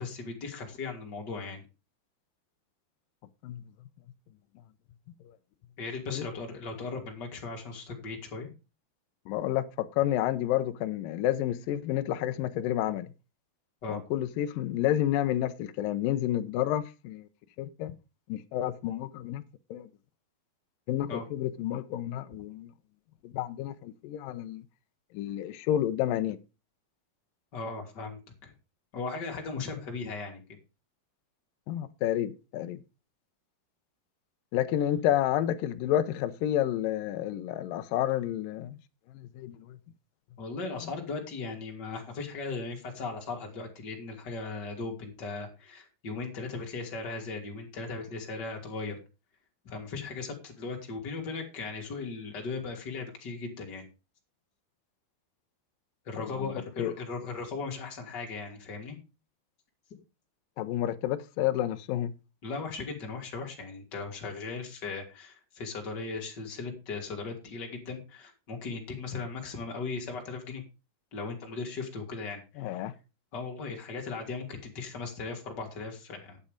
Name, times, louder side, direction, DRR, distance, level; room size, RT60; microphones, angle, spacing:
voice 1, 0.0-1.6 5.8-8.5 13.8-14.0 21.1-21.2 27.5-28.5 28.9-30.4 40.4-49.0 49.6-53.8 56.0-59.0 62.4-70.6 71.1-72.8 73.3-76.4, left 4 dB, 30° left, 2.9 m, -37 dB
voice 2, 9.3-13.1 13.9-17.3 17.6-18.0 18.3-19.4 19.7-19.9 20.9-22.7 23.2-24.7 25.1-26.4 31.7-32.8 34.5-38.8 39.1-39.8 40.8-40.9 56.2-56.5 56.8-56.9 60.6-62.1 72.6-72.9, left 12 dB, 75° left, 2.3 m, -30 dB
10.5 x 8.5 x 5.1 m
omnidirectional pair, 4.3 m